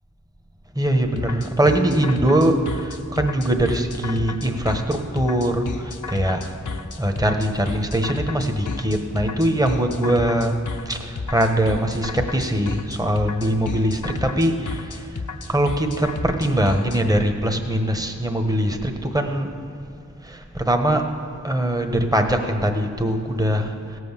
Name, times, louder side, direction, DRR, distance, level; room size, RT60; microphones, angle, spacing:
voice 1, 0.8-6.5 7.0-10.5 10.9-15.0 15.5-19.5 20.2-21.0 21.4-23.7, right 1 dB, 10° right, 5 dB, 1.3 m, -22 dB
sound 1, 1.2-17.0, left 4 dB, 70° left, 0.9 m, -32 dB
16.5 x 6.3 x 7.4 m, 2.4 s
wide cardioid pair, 45°, 31 cm